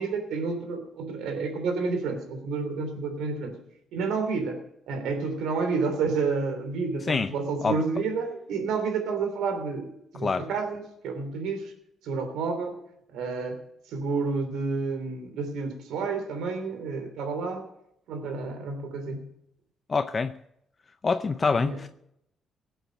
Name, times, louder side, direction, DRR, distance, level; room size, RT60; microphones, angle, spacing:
voice 1, 0.0-3.5 3.9-4.6 4.9-11.7 12.0-12.8 13.1-13.6 13.9-17.7 18.1-19.2 21.5-21.8, right 4 dB, 85° right, 6 dB, 3.1 m, -30 dB
voice 2, 19.9-20.4 21.0-21.9, left 4 dB, 35° left, 10 dB, 0.6 m, -25 dB
17.5 x 8.0 x 6.6 m, 0.77 s
cardioid pair, 90°, 0 cm